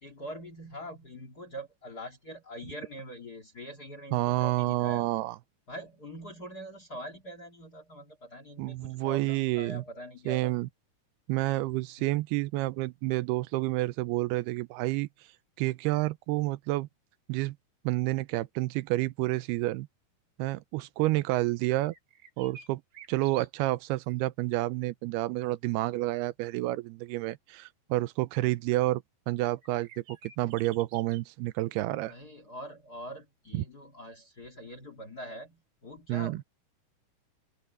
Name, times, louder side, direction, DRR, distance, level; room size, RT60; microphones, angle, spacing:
voice 1, 0.0-5.1 5.7-10.5 12.0-12.1 32.1-36.4, equal, 35° left, 1.7 m, -43 dB
voice 2, 4.1-5.4 8.6-9.8 10.3-10.7 11.3-15.1 15.6-16.9 17.3-17.6 17.8-19.9 20.4-21.9 22.4-22.8 23.1-30.0 30.4-32.1 33.5-33.6 36.1-36.4, right 18 dB, 90° right, 2.6 m, -29 dB
sound 1, 21.9-24.0 24.2-24.3 29.6-31.2, right 5 dB, 45° right, 3.2 m, -51 dB
open air
omnidirectional pair, 4.6 m